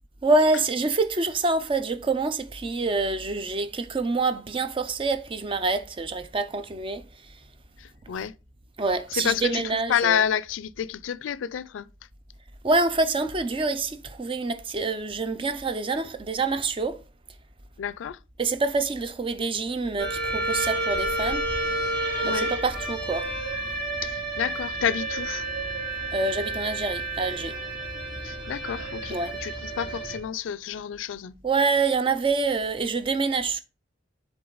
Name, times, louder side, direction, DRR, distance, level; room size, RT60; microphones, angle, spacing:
voice 1, 0.2-7.0 8.8-10.2 12.6-17.0 18.4-21.5 22.2-23.3 26.1-27.6 29.1-29.3 31.4-33.6, right 3 dB, 30° right, 0.5 m, -26 dB
voice 2, 7.8-8.3 9.1-9.6 9.9-11.9 17.8-18.2 22.2-22.5 24.0-25.4 28.2-31.3, left 8 dB, 80° left, 0.3 m, -29 dB
sound 1, 20.0-30.2, right 2 dB, 50° right, 2.3 m, -30 dB
7.7 x 3.7 x 3.9 m
head